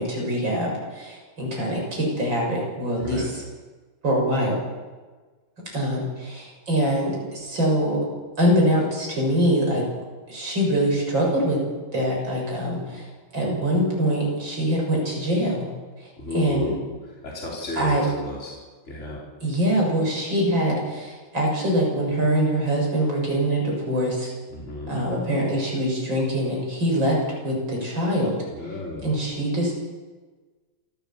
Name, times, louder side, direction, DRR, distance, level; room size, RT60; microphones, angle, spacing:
voice 1, 0.0-3.4 4.0-4.6 5.7-8.0 8.4-9.8 10.3-11.6 11.9-13.1 13.3-15.7 16.3-16.7 17.8-18.0 19.4-24.3 24.9-27.2 27.4-28.4 29.0-29.7, equal, 65° right, -1 dB, 7.9 m, -23 dB
voice 2, 3.0-3.3 16.2-16.9 17.2-18.5 18.9-19.2 24.5-25.0 28.5-29.1, left 2 dB, 35° left, -4 dB, 4.5 m, -33 dB
28.0 x 14.0 x 7.3 m, 1.3 s
omnidirectional pair, 2.2 m